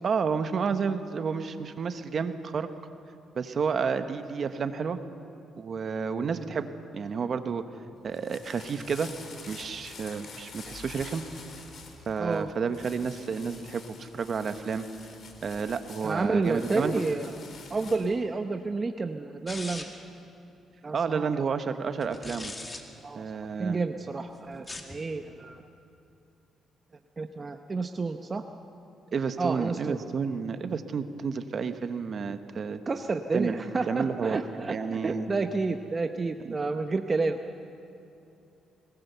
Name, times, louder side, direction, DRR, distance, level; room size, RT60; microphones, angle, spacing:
voice 1, 0.0-2.7 3.3-5.0 5.6-6.7 6.9-7.6 8.0-9.1 9.5-11.2 12.1-14.9 15.4-17.0 20.9-22.5 23.1-23.8 29.1-32.8 33.3-34.4 34.7-35.3 36.4-36.5, right 5 dB, 50° right, 9 dB, 1.1 m, -30 dB
sound 1, 8.0-18.2, left 4 dB, 55° left, 3.1 m, -47 dB
voice 2, 12.2-12.5 16.0-17.3 17.7-19.8 20.8-21.3 23.0-23.2 23.6-25.6 27.2-28.4 29.4-30.0 32.9-34.8 35.0-37.4, right 3 dB, 30° right, 7 dB, 0.8 m, -30 dB
sound 2, 19.5-20.1 22.0-22.8 24.5-25.0, left 2 dB, 25° left, 2.0 m, -39 dB
22.0 x 19.5 x 6.9 m, 2.8 s
cardioid pair, 90°, 0 cm